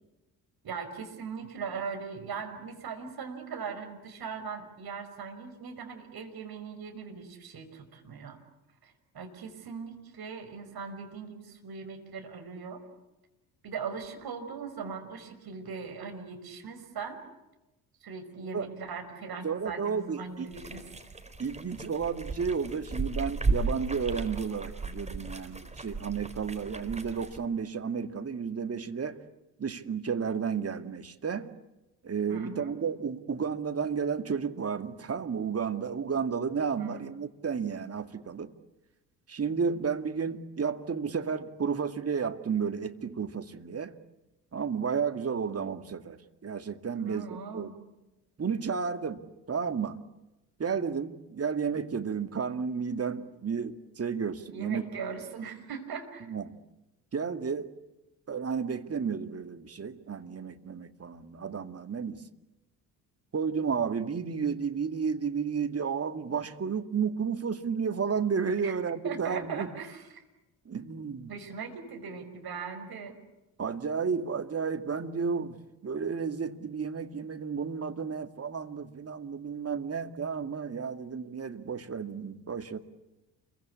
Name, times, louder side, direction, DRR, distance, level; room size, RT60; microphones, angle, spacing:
voice 1, 0.6-8.4 8.8-12.8 13.6-17.2 18.0-20.8 32.3-32.8 36.8-37.0 46.9-47.8 54.5-56.3 68.6-68.8 69.0-70.2 71.3-73.2, right 5 dB, 45° right, 6 dB, 6.0 m, -40 dB
voice 2, 19.4-20.5 21.4-29.2 29.6-31.5 32.0-38.5 39.3-43.9 44.5-47.3 47.5-47.7 48.4-49.2 49.5-50.0 50.6-54.8 56.3-56.6 57.1-57.7 58.3-62.2 63.3-69.7 70.7-71.3 73.6-75.6 75.8-82.8, right 6 dB, 30° right, 8 dB, 2.3 m, -32 dB
sound 1, 20.5-27.4, right 3 dB, 15° right, 4.1 m, -35 dB
29.0 x 23.5 x 8.5 m, 0.98 s
figure-of-eight pair, 50°, 50 cm